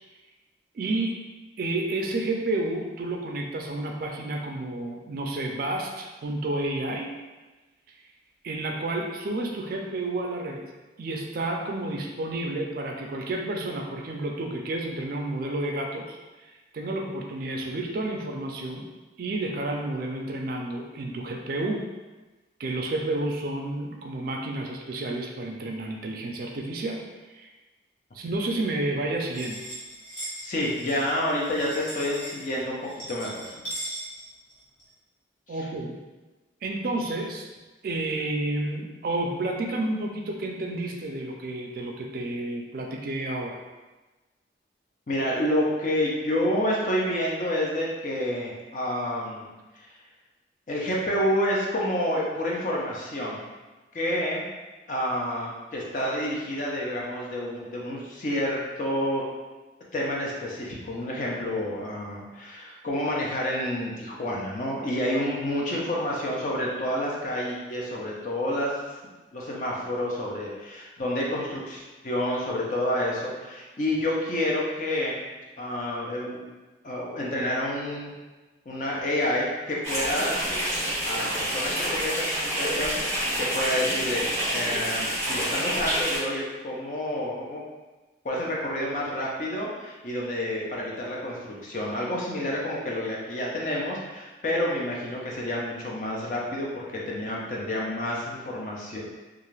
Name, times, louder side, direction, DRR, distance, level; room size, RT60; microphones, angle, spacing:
voice 1, 0.7-1.2 1.6-7.1 8.4-10.6 11.0-18.9 19.2-21.8 22.6-27.0 27.3-27.5 28.1-29.7 35.5-36.0 36.6-37.5 37.8-43.6, right 2 dB, 50° right, 1 dB, 0.3 m, -30 dB
sound 1, 29.3-34.9, right 1 dB, 65° left, 1.2 m, -39 dB
voice 2, 30.4-33.4 35.5-35.6 45.1-49.5 49.8-49.9 50.7-53.5 53.9-54.5 54.9-59.2 59.9-68.8 69.3-75.2 75.6-76.4 76.8-78.1 78.7-80.4 81.1-84.3 84.5-87.6 88.2-99.0, left 1 dB, 45° left, -3 dB, 0.5 m, -29 dB
sound 2, 79.8-86.2, equal, 15° left, 1.1 m, -28 dB
2.4 x 2.3 x 3.1 m, 1.2 s
head